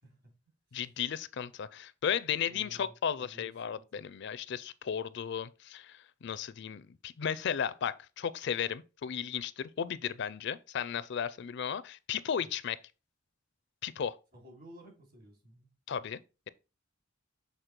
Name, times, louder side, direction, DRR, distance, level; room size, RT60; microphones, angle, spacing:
voice 1, 0.7-12.8 13.8-14.2 15.9-16.2, left 8 dB, 60° left, 0.4 m, -35 dB
voice 2, 2.3-4.0 12.4-12.5 14.3-15.7, equal, 50° right, 3.1 m, -54 dB
6.6 x 4.1 x 4.4 m
head